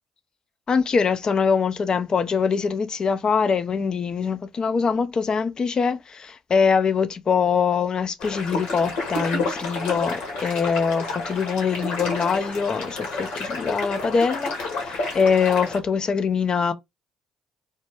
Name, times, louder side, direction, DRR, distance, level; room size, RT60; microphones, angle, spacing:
voice 1, 0.7-16.7, left 5 dB, 40° left, 0.4 m, -23 dB
sound 1, 8.2-15.8, left 3 dB, 70° left, 1.0 m, -30 dB
2.1 x 2.1 x 2.9 m
hypercardioid pair, 50°, 2 cm